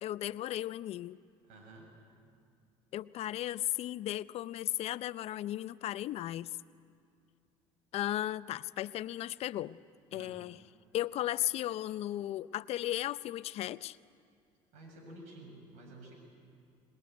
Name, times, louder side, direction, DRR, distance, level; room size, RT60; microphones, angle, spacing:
voice 1, 0.0-1.2 2.9-6.5 7.9-9.8 10.1-10.6 10.9-14.0, left 13 dB, 60° left, 17 dB, 0.6 m, -35 dB
voice 2, 1.4-1.9 10.1-10.4 14.7-16.1, right 1 dB, 80° right, 2 dB, 7.3 m, -51 dB
24.5 x 20.0 x 9.5 m, 2.4 s
supercardioid pair, 85°, 12 cm